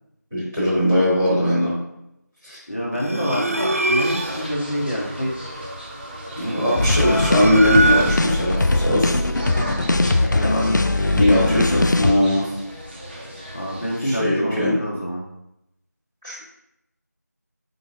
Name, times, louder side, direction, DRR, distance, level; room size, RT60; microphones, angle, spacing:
voice 1, 0.3-1.7 2.4-2.6 6.3-9.2 11.1-12.5 14.0-14.7 16.2-16.5, left 1 dB, 10° right, -18 dB, 1.7 m, -20 dB
voice 2, 2.7-5.3 10.3-10.7 13.5-15.2, equal, 45° left, -5 dB, 1.0 m, -27 dB
sound 1, 2.9-4.5 6.4-8.5, right 2 dB, 50° right, 0.5 m, -23 dB
sound 2, 4.0-14.0, equal, 35° right, 0.9 m, -36 dB
sound 3, 6.8-12.1, left 2 dB, 85° left, 0.4 m, -20 dB
5.2 x 3.7 x 2.7 m, 0.83 s
figure-of-eight pair, 175°, 10 cm